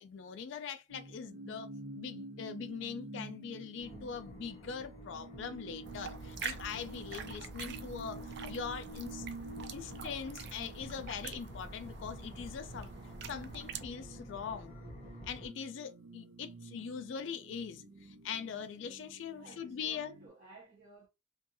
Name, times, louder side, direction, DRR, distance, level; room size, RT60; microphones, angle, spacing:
voice 1, 0.0-9.3 9.7-12.9 13.3-14.7 15.3-20.1, left 7 dB, 60° left, 0.3 m, -42 dB
sound 1, 0.9-20.3, right 2 dB, 85° right, 0.7 m, -50 dB
sound 2, 3.8-15.5, left 1 dB, 30° left, 0.7 m, -52 dB
sound 3, 5.8-13.8, right 5 dB, 55° right, 0.4 m, -45 dB
voice 2, 19.3-21.1, right 2 dB, 35° right, 0.7 m, -55 dB
2.6 x 2.3 x 2.6 m
head